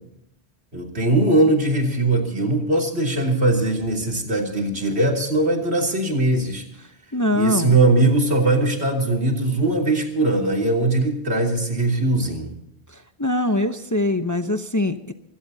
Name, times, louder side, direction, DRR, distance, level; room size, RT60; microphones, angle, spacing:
voice 1, 0.7-6.6 7.3-12.5, right 2 dB, 75° right, 1 dB, 3.5 m, -20 dB
voice 2, 7.1-7.8 12.9-15.1, left 1 dB, 20° left, 7 dB, 0.8 m, -23 dB
25.5 x 17.0 x 2.8 m, 0.76 s
omnidirectional pair, 1.1 m